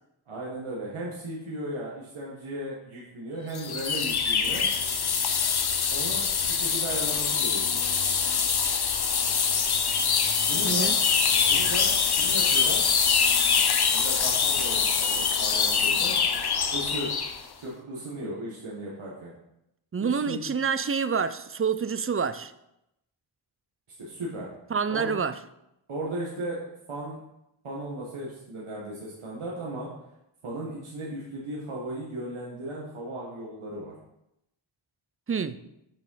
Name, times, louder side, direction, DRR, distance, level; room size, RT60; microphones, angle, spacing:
voice 1, 0.3-4.7 5.9-7.8 10.5-10.9 11.5-12.8 13.9-16.2 16.7-17.1 17.6-19.3 20.0-20.4 24.0-24.5 24.9-25.1 25.9-26.6 26.9-27.2 27.6-29.9 30.4-33.9, right 1 dB, 85° right, 1.8 m, -36 dB
sound 1, 3.5-17.4, left 6 dB, 50° left, 0.8 m, -24 dB
voice 2, 10.6-11.0 19.9-22.5 24.7-25.3 35.3-35.6, right 6 dB, 30° right, 0.5 m, -27 dB
7.4 x 5.3 x 5.6 m
wide cardioid pair, 65°, 49 cm